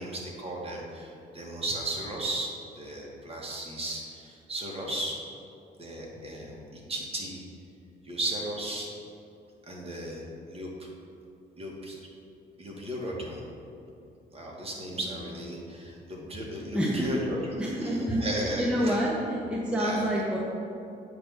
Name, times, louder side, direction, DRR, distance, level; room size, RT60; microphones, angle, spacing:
voice 1, 0.0-2.5 2.8-5.2 5.8-7.4 8.0-8.9 9.7-10.9 11.6-12.0 12.6-13.5 14.3-19.1 19.8-20.0, right 1 dB, 30° right, -2 dB, 1.6 m, -35 dB
voice 2, 16.7-17.1 17.6-20.4, equal, 5° right, -4 dB, 0.9 m, -28 dB
7.7 x 3.4 x 6.3 m, 2.7 s
cardioid pair, 90°, 20 cm